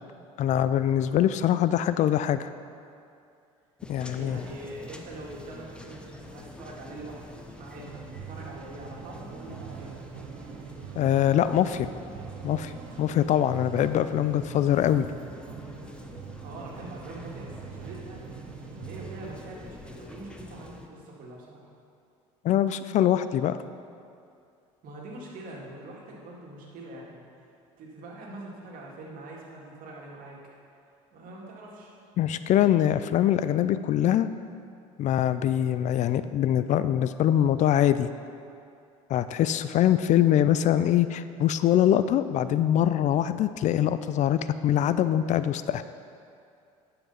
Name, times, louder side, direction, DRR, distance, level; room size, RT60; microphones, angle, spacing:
voice 1, 0.4-2.5 3.9-4.4 11.0-11.9 12.4-12.7 13.0-15.1 22.4-23.6 32.2-34.3 35.0-38.1 39.1-45.8, left 11 dB, 50° left, 13 dB, 0.4 m, -23 dB
sound 1, 3.8-20.9, left 2 dB, 5° left, 0.9 m, -46 dB
voice 2, 3.9-9.9 16.4-18.2 18.7-21.7 24.8-27.2 27.8-30.4 31.1-32.0, right 1 dB, 60° right, -2 dB, 2.3 m, -43 dB
sound 2, 7.8-19.5, right 10 dB, 75° right, 0.8 m, -44 dB
10.5 x 5.8 x 5.6 m, 2.4 s
hypercardioid pair, 75°, 16 cm